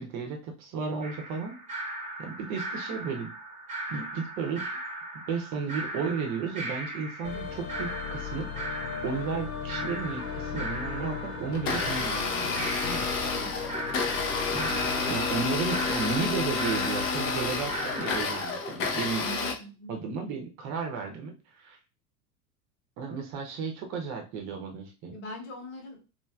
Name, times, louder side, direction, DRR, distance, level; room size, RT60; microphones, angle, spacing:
voice 1, 0.0-1.6 2.2-3.3 3.9-4.8 5.3-8.5 9.0-13.0 14.5-19.2 19.9-21.8 23.0-25.1, right 5 dB, 40° right, 3 dB, 0.8 m, -34 dB
sound 1, 1.0-18.5, right 2 dB, 15° right, 1.0 m, -38 dB
sound 2, 7.2-18.3, left 7 dB, 75° left, 0.7 m, -38 dB
Domestic sounds home sounds, 11.5-19.5, left 4 dB, 30° left, 0.6 m, -30 dB
voice 2, 13.3-13.6 19.2-20.0 25.1-26.1, equal, 50° left, 0 dB, 1.2 m, -42 dB
3.1 x 2.5 x 2.3 m, 0.32 s
figure-of-eight pair, 85°, 45 cm